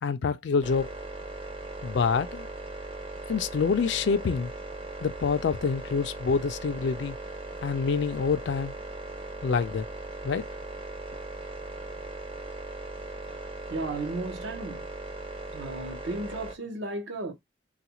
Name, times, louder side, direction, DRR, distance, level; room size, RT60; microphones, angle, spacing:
voice 1, 0.0-0.9 1.8-2.5 3.3-4.5 5.0-7.2 7.6-8.7 9.4-9.9 10.2-10.5, left 5 dB, 65° left, 0.3 m, -26 dB
sound 1, 0.6-16.6, right 2 dB, 30° right, 0.5 m, -39 dB
voice 2, 13.7-14.9 15.5-17.3, right 2 dB, 70° right, 0.7 m, -34 dB
3.3 x 2.4 x 2.9 m
head